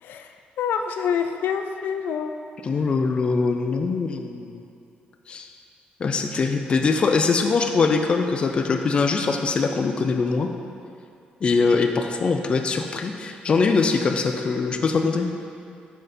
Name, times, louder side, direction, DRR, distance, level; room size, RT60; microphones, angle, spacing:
voice 1, 0.0-2.4, left 7 dB, 90° left, 6 dB, 0.4 m, -27 dB
voice 2, 2.6-4.6 5.3-5.5 6.0-10.5 11.4-15.3, left 4 dB, 35° left, 5 dB, 0.4 m, -22 dB
6.5 x 6.5 x 4.2 m, 2.6 s
wide cardioid pair, 165°, 3 cm